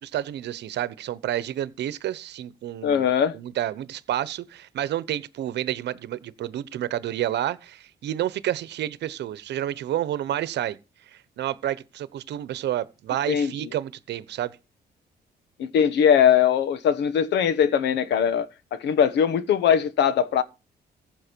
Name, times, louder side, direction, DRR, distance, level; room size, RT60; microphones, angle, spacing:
voice 1, 0.0-10.8 11.1-14.5, right 12 dB, 75° right, 1.0 m, -30 dB
voice 2, 2.8-3.3 13.3-13.5 15.6-20.4, left 8 dB, 80° left, 1.3 m, -21 dB
15.5 x 7.6 x 4.6 m
cardioid pair, 105°, 18 cm